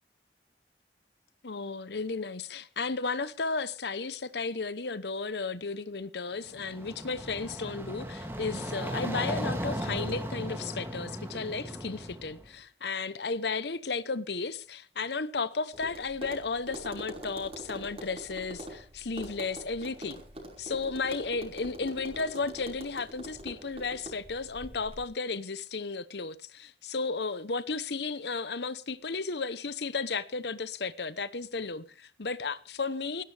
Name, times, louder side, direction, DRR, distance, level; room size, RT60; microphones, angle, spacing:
voice 1, 1.4-20.2 20.6-33.2, left 4 dB, 75° left, 1.0 m, -34 dB
sound 1, 6.4-12.5, equal, 15° right, 2.6 m, -36 dB
Tap, 15.7-25.0, right 1 dB, 35° right, 5.2 m, -44 dB
19.0 x 17.0 x 3.5 m
head